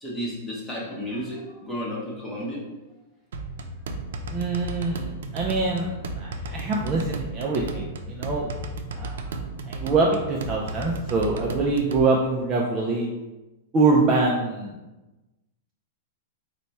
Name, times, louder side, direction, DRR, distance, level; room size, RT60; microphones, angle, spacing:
voice 1, 0.0-2.6 8.9-9.4, equal, 10° left, -4 dB, 0.9 m, -33 dB
sound 1, 3.3-12.0, right 2 dB, 85° right, 0.4 m, -34 dB
voice 2, 4.3-8.5 8.9-9.4 9.6-13.1 13.7-14.8, right 3 dB, 20° right, -2 dB, 0.4 m, -24 dB
4.3 x 2.2 x 4.1 m, 1.1 s
supercardioid pair, 165°, 0 cm